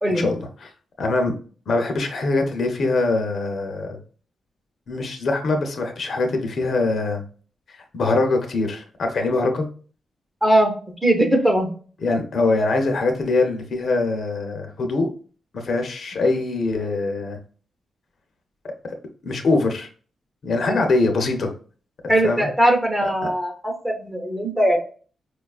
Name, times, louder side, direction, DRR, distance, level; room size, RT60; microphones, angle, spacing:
voice 1, 0.1-0.7 1.0-1.3 1.7-4.0 4.9-7.2 7.9-9.7 12.0-15.1 15.5-17.4 19.2-19.9 20.4-21.5 22.0-22.5 23.0-23.1, left 3 dB, 50° left, 4 dB, 0.6 m, -23 dB
voice 2, 10.4-10.7 11.0-11.7 20.7-20.8 22.1-24.8, right 1 dB, 10° right, 3 dB, 0.7 m, -20 dB
4.7 x 2.3 x 2.3 m, 0.41 s
wide cardioid pair, 145°, 0 cm